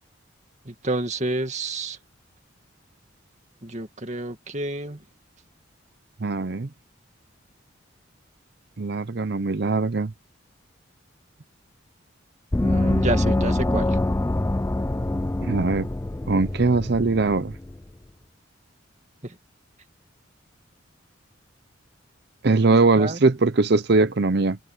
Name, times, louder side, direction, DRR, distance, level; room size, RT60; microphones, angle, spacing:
voice 1, 0.7-2.0 3.6-5.0 12.5-14.0 19.2-19.4 22.6-23.2, right 2 dB, 35° right, 2.2 m, -29 dB
voice 2, 6.2-6.7 8.8-10.1 15.4-15.9 16.3-17.5 22.4-24.6, right 3 dB, 55° right, 0.7 m, -21 dB
Gong, 12.5-17.8, left 1 dB, 15° left, 0.3 m, -25 dB
head